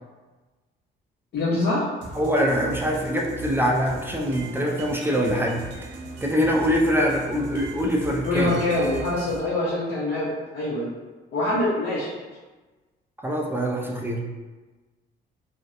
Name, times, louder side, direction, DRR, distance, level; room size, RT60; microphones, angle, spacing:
voice 1, 1.3-1.8 8.3-10.9 11.3-12.1, left 2 dB, 60° left, -9 dB, 0.7 m, -24 dB
sound 1, 2.0-9.4, right 2 dB, 70° right, 0.5 m, -38 dB
voice 2, 2.1-5.9 6.2-8.6 13.2-14.2, equal, 10° right, -2 dB, 0.3 m, -24 dB
2.6 x 2.1 x 2.4 m, 1.3 s
cardioid pair, 90°, 20 cm